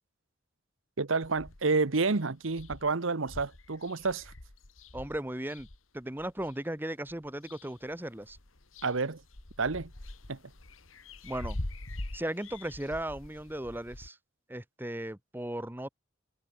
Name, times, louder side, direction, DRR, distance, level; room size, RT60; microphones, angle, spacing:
voice 1, 1.0-4.3 8.8-9.2 9.6-9.9 10.3-10.4, right 4 dB, 75° right, 1.1 m, -29 dB
sound 1, 1.2-1.8 2.2-2.3 2.5-6.5 7.1-7.9 8.2-14.1, left 1 dB, 85° left, 2.4 m, -44 dB
voice 2, 4.9-5.7 5.9-8.4 11.2-11.6 12.1-14.2 14.5-15.9, right 1 dB, 10° right, 1.2 m, -36 dB
head